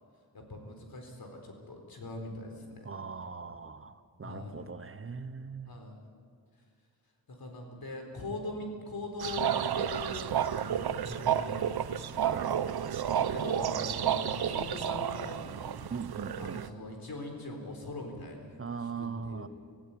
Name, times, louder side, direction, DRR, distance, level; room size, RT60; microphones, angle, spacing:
voice 1, 0.3-2.9 4.2-4.7 5.7-6.0 7.3-12.2 13.2-15.9 16.4-18.6 19.0-19.5, left 2 dB, 70° left, 3 dB, 4.1 m, -41 dB
voice 2, 2.8-5.8 12.2-12.6 15.9-16.6 18.6-19.5, right 5 dB, 35° right, 12 dB, 0.8 m, -40 dB
sound 1, 9.2-16.7, right 9 dB, 85° right, 0.8 m, -31 dB
26.0 x 15.5 x 8.6 m, 2.1 s
wide cardioid pair, 155°, 37 cm